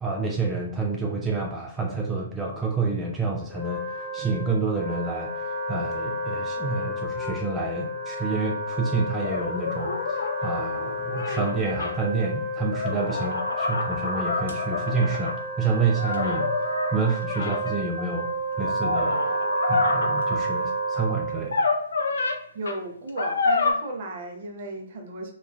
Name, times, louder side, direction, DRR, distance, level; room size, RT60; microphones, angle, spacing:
voice 1, 0.0-16.6 16.9-18.3 18.6-19.2 19.7-21.7, right 4 dB, 10° right, 0 dB, 0.3 m, -28 dB
Wind instrument woodwind instrument, 3.4-21.6, equal, 45° left, 0.8 m, -31 dB
sound 1, 9.2-11.9 12.6-15.4 15.9-18.0 18.6-20.4 21.4-22.4 22.7-22.8 23.2-23.7, left 3 dB, 70° left, 0.4 m, -28 dB
voice 2, 22.5-25.3, right 2 dB, 50° right, 3 dB, 0.6 m, -35 dB
3.0 x 2.3 x 2.3 m, 0.65 s
figure-of-eight pair, 125°, 0 cm